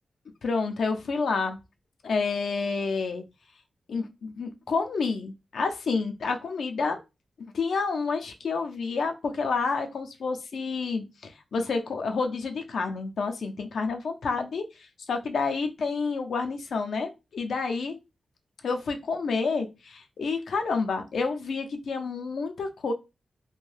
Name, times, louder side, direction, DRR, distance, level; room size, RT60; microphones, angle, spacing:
voice 1, 0.4-1.6 2.0-3.2 3.9-7.0 7.5-14.6 15.1-18.0 18.6-22.9, left 4 dB, 85° left, 5 dB, 0.5 m, -29 dB
2.6 x 2.2 x 3.2 m, 0.26 s
wide cardioid pair, 100°, 0 cm